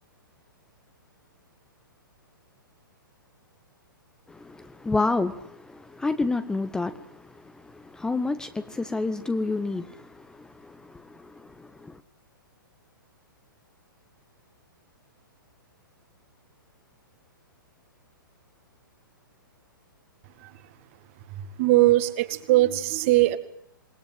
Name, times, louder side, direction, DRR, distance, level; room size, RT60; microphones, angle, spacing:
voice 1, 4.3-12.0, left 3 dB, 5° left, 1.0 m, -30 dB
voice 2, 21.6-23.4, right 17 dB, 35° right, 2.1 m, -20 dB
27.5 x 20.5 x 7.8 m
figure-of-eight pair, 115°, 12 cm